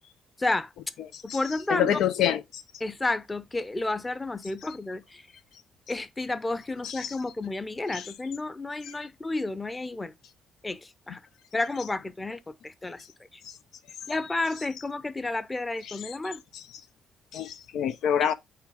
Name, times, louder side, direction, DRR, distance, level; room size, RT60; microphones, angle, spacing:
voice 1, 0.4-0.7 1.2-2.0 2.8-5.3 5.9-10.1 10.6-11.2 11.5-13.0 13.3-13.4 14.1-16.4, left 2 dB, 20° left, 0.8 m, -31 dB
voice 2, 1.7-2.6 6.8-7.1 7.9-8.0 17.3-18.3, left 9 dB, 80° left, 0.7 m, -26 dB
5.9 x 3.6 x 5.0 m
cardioid pair, 90°, 0 cm